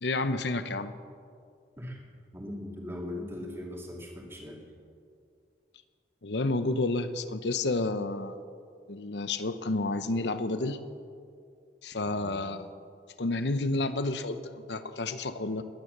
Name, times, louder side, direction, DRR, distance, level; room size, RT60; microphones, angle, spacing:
voice 1, 0.0-0.9 6.2-8.4 8.9-10.8 11.8-12.7 13.2-15.6, left 2 dB, 75° left, 11 dB, 0.8 m, -30 dB
voice 2, 2.3-4.6 12.1-12.4, left 1 dB, 15° right, 0 dB, 2.4 m, -39 dB
20.5 x 9.7 x 6.7 m, 2.3 s
head